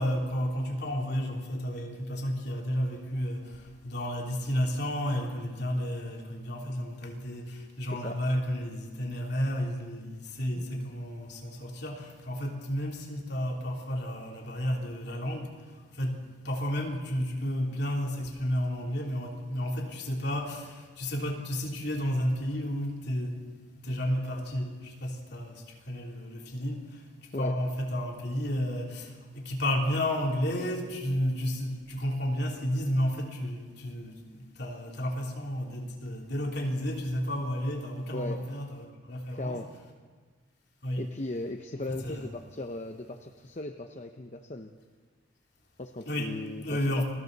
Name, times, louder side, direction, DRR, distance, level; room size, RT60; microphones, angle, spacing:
voice 1, 0.0-23.4 23.8-39.6 40.8-41.0 41.9-42.3 46.0-47.0, equal, 55° left, 3.4 m, -32 dB
voice 2, 38.1-38.5 39.3-39.7 41.0-44.7 45.8-47.0, left 2 dB, 35° left, 0.8 m, -38 dB
29.5 x 22.0 x 4.1 m
head